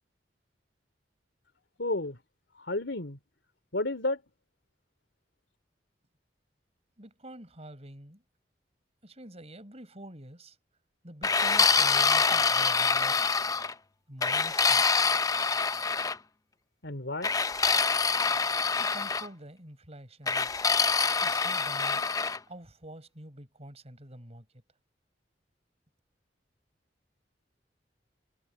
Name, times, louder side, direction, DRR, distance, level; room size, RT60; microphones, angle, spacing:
voice 1, 1.8-2.2 2.7-3.2 3.7-4.2 16.8-17.3, left 2 dB, 85° left, 3.0 m, -31 dB
voice 2, 7.0-8.2 9.0-10.6 11.0-13.4 14.1-14.9 18.8-20.7 21.2-22.0 22.5-24.5, right 1 dB, 35° right, 6.0 m, -47 dB
sound 1, 11.2-13.7 14.2-16.2 17.2-19.3 20.3-22.4, left 5 dB, 20° left, 0.5 m, -25 dB
head